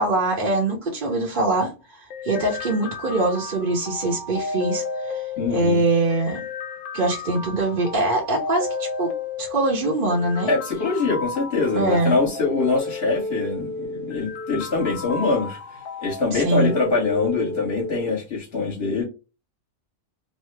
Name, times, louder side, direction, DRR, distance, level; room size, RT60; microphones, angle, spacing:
voice 1, 0.0-5.2 5.5-6.5 6.9-9.1 9.4-10.5 11.7-12.2 16.3-16.8, right 2 dB, 45° right, 0.8 m, -23 dB
sound 1, 2.1-18.1, left 4 dB, 65° left, 0.5 m, -33 dB
voice 2, 5.4-5.8 10.5-19.0, left 3 dB, 50° left, 1.4 m, -24 dB
3.1 x 2.0 x 3.2 m
omnidirectional pair, 1.4 m